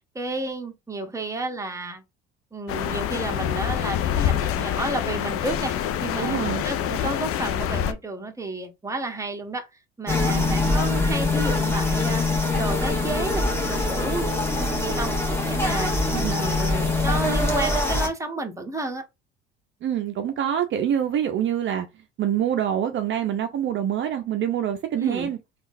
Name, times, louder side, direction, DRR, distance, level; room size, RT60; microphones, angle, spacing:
voice 1, 0.1-2.0 2.5-6.4 6.6-9.7 10.0-15.1 15.4-15.9 16.3-19.0 25.0-25.3, right 2 dB, 10° right, 0.8 m, -31 dB
sound 1, 2.7-7.9, left 10 dB, 50° left, 0.5 m, -26 dB
voice 2, 6.2-6.6 10.3-10.7 16.1-16.4 19.8-21.9 22.2-25.4, right 10 dB, 40° right, 0.5 m, -26 dB
sound 2, 10.1-18.1, left 2 dB, 10° left, 1.3 m, -23 dB
3.6 x 2.4 x 2.6 m
hypercardioid pair, 75°, 29 cm